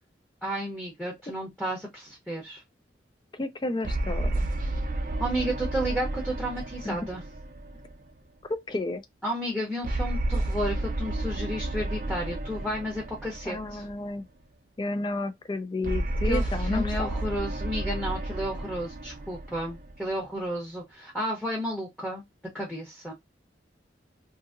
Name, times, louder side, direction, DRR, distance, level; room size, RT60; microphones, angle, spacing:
voice 1, 0.4-2.6 5.2-7.2 9.2-13.8 16.2-22.2 22.5-23.1, equal, ahead, 0.7 m, -32 dB
voice 2, 3.3-4.5 6.8-7.0 8.5-9.0 13.5-14.3 14.8-17.1, left 2 dB, 25° left, 0.4 m, -31 dB
sound 1, 3.8-8.4 9.8-14.2 15.8-20.4, right 1 dB, 45° right, 0.5 m, -31 dB
2.7 x 2.6 x 2.5 m
head